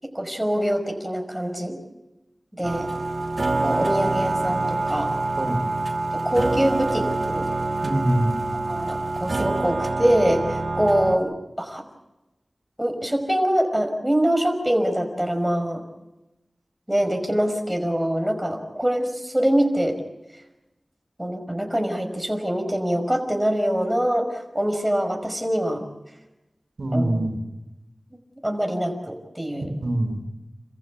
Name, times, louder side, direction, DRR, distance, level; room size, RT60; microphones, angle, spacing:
voice 1, 0.0-1.8 2.6-2.9 3.6-5.1 6.2-7.5 8.7-11.8 12.8-15.8 16.9-20.0 21.2-25.8 26.9-27.3 28.4-29.7, equal, 10° right, 4 dB, 5.3 m, -24 dB
sound 1, 2.6-11.2, right 2 dB, 60° right, 1.5 m, -26 dB
voice 2, 5.4-5.7 7.8-8.3 26.8-27.4 29.6-30.2, right 1 dB, 80° right, 7 dB, 3.2 m, -24 dB
28.5 x 15.0 x 8.3 m, 1.0 s
wide cardioid pair, 45°, 0 cm